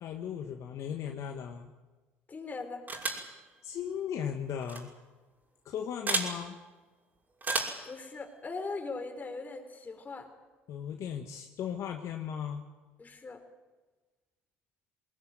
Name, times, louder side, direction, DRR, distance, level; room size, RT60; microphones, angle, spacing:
voice 1, 0.0-1.7 3.6-4.9 5.7-6.6 10.7-12.6, left 8 dB, 60° left, 4 dB, 1.8 m, -37 dB
voice 2, 2.3-2.9 7.8-10.3 13.0-13.4, left 3 dB, 30° left, 5 dB, 4.7 m, -40 dB
sound 1, 2.9-3.3 4.6-4.8 6.1-6.3 7.4-7.8, right 3 dB, 30° right, 6.0 m, -31 dB
20.0 x 19.5 x 9.4 m, 1.2 s
supercardioid pair, 75°, 6 cm